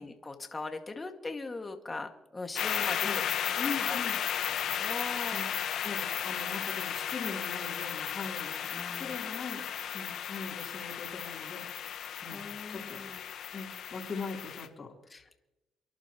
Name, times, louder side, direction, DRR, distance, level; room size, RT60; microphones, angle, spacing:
voice 1, 0.0-3.1 3.8-4.1 4.4-5.4 6.3-6.5 8.7-9.3 12.3-13.2 15.1-15.4, left 3 dB, 25° left, 4 dB, 2.0 m, -41 dB
sound 1, 2.6-14.7, left 9 dB, 75° left, 1.2 m, -34 dB
voice 2, 2.8-4.2 5.3-5.5 5.8-8.7 9.0-9.7 9.9-11.7 12.2-13.0 13.5-14.9, left 4 dB, 45° left, -1 dB, 3.6 m, -41 dB
29.5 x 11.5 x 3.1 m, 0.99 s
cardioid pair, 90°, 0 cm